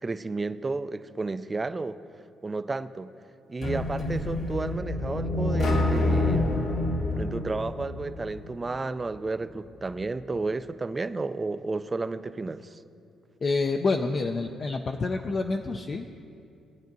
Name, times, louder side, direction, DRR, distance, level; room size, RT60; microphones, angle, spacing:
voice 1, 0.0-2.0 2.4-3.1 3.5-6.5 7.2-12.8, right 3 dB, 25° right, 13 dB, 0.4 m, -32 dB
sound 1, 3.6-8.5, left 2 dB, 70° left, 1.6 m, -27 dB
voice 2, 13.4-16.1, left 3 dB, 40° left, 4 dB, 0.5 m, -28 dB
19.5 x 8.9 x 2.7 m, 2.5 s
cardioid pair, 90°, 0 cm